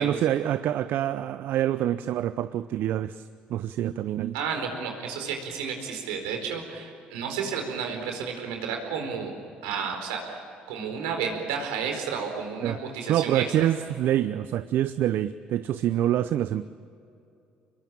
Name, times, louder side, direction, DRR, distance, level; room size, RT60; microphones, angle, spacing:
voice 1, 0.0-4.4 12.6-12.8 13.1-16.7, right 12 dB, 65° right, 13 dB, 0.6 m, -26 dB
voice 2, 4.3-9.3 9.6-10.4 10.7-13.7, right 6 dB, 85° right, 3 dB, 4.4 m, -32 dB
25.5 x 22.0 x 8.8 m, 2.5 s
hypercardioid pair, 60°, 4 cm